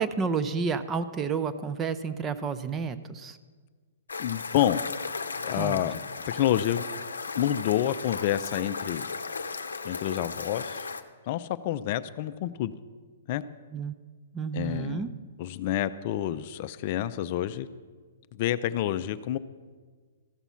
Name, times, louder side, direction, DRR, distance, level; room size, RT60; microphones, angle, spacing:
voice 1, 0.0-3.4 5.6-5.8 13.7-13.9 14.3-15.1, right 5 dB, 20° right, 11 dB, 0.5 m, -30 dB
sound 1, 4.1-11.0, left 4 dB, 90° left, 0.6 m, -36 dB
voice 2, 4.2-4.8 5.4-6.8 7.4-9.1 9.8-10.9 11.3-12.7 13.3-13.4 14.5-15.0 15.4-17.7 18.3-19.4, left 12 dB, 45° left, 12 dB, 0.4 m, -28 dB
14.0 x 6.0 x 5.7 m, 1.5 s
hypercardioid pair, 130°, 0 cm